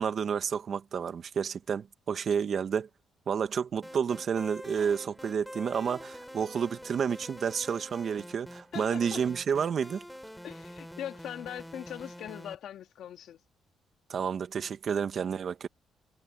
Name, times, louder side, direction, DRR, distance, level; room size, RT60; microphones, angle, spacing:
voice 1, 0.0-2.9 3.3-10.0 14.1-15.7, right 7 dB, 55° right, 1.5 m, -30 dB
sound 1, 3.8-12.6, equal, ahead, 3.4 m, -46 dB
voice 2, 8.7-9.2 10.4-13.4, left 10 dB, 75° left, 2.2 m, -41 dB
cardioid pair, 90°, 0 cm